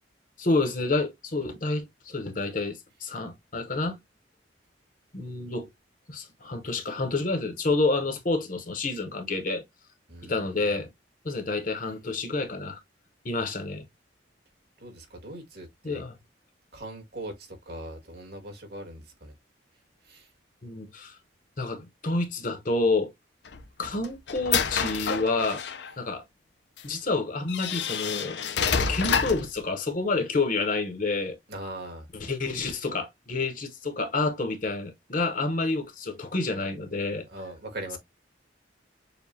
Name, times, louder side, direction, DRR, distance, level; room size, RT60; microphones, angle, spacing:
voice 1, 0.4-4.0 5.1-5.7 6.1-9.6 10.2-10.9 11.2-12.8 13.2-13.8 15.8-16.2 20.6-21.2 21.6-23.1 23.8-25.6 26.0-26.2 26.8-28.4 28.9-31.4 32.2-37.3, left 3 dB, 45° left, 0.9 m, -29 dB
voice 2, 10.1-10.7 14.8-16.0 16.7-19.3 20.0-20.3 31.5-32.1 37.3-38.0, right 1 dB, 60° right, 1.9 m, -40 dB
sound 1, 23.5-25.9 26.8-26.9 27.5-29.5, left 6 dB, 65° left, 0.6 m, -28 dB
6.9 x 2.3 x 2.7 m
head